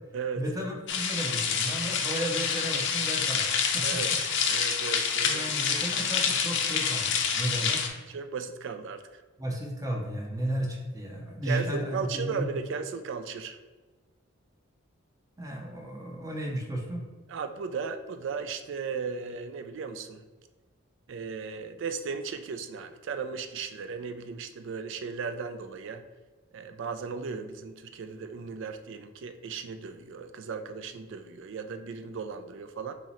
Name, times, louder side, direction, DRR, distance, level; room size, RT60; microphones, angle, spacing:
voice 1, 0.4-4.2 5.2-7.9 9.4-12.6 15.4-17.1, right 1 dB, 15° right, 0 dB, 0.7 m, -34 dB
sound 1, 0.9-7.9, left 6 dB, 60° left, 0.5 m, -27 dB
voice 2, 4.5-5.4 8.1-9.2 11.5-13.6 17.3-20.2 21.1-26.0 26.5-32.9, right 5 dB, 60° right, 9 dB, 0.4 m, -36 dB
3.7 x 3.0 x 4.2 m, 1.3 s
head